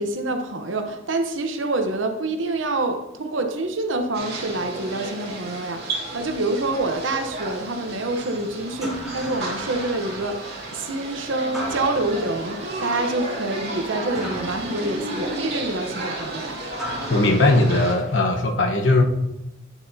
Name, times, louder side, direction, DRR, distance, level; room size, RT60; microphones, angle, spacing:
voice 1, 0.0-16.6, right 2 dB, 75° right, 5 dB, 0.9 m, -27 dB
sound 1, 4.1-17.9, right 2 dB, 55° right, 2.7 m, -33 dB
sound 2, 7.1-18.4, equal, ahead, 2.4 m, -38 dB
voice 2, 17.1-19.0, left 2 dB, 70° left, 3 dB, 1.1 m, -18 dB
9.9 x 7.0 x 2.8 m, 0.89 s
head